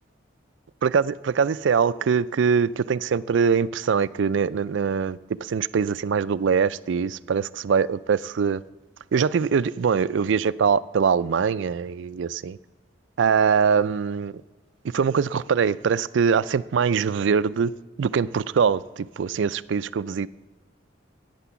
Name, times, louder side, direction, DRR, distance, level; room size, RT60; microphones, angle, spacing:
voice 1, 0.8-8.6 9.1-12.6 13.2-14.3 14.9-17.7 18.0-20.3, right 6 dB, 70° right, 0.4 m, -23 dB
14.5 x 8.9 x 6.9 m
head